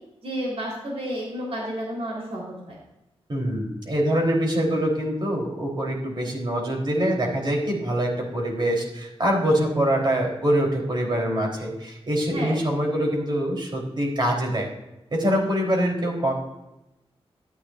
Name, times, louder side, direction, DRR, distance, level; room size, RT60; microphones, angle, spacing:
voice 1, 0.2-2.8 12.3-12.6, equal, 70° right, -3 dB, 3.6 m, -31 dB
voice 2, 3.3-14.7 15.1-16.3, equal, 50° right, 0 dB, 3.4 m, -24 dB
13.0 x 10.0 x 2.5 m, 0.92 s
wide cardioid pair, 80°, 11 cm